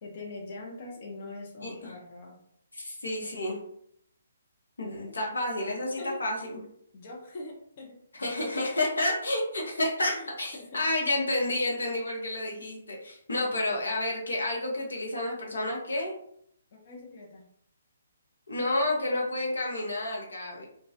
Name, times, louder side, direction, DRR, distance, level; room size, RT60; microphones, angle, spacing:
voice 1, 0.0-2.4 5.6-6.2 6.9-8.0 8.6-8.8 10.1-10.8 16.7-17.5, left 2 dB, 45° left, -2 dB, 0.6 m, -43 dB
voice 2, 2.7-3.6 4.8-6.6 8.2-16.1 18.5-20.7, left 1 dB, 85° left, -1 dB, 0.7 m, -30 dB
2.2 x 2.1 x 2.7 m, 0.69 s
hypercardioid pair, 145°, 0 cm